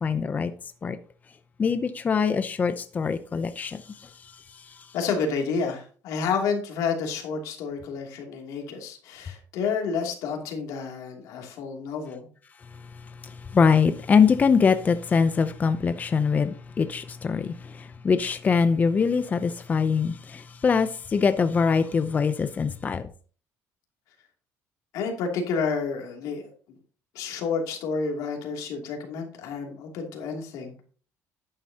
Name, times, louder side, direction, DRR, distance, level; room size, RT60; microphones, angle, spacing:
voice 1, 0.0-0.5 0.8-1.0 1.6-3.8 13.2-23.1, left 5 dB, 30° left, 0.6 m, -23 dB
voice 2, 4.9-12.3 24.9-26.4 26.7-26.8 27.1-30.7, left 5 dB, 85° left, 2.8 m, -30 dB
11.5 x 8.8 x 2.9 m
cardioid pair, 125°, 6 cm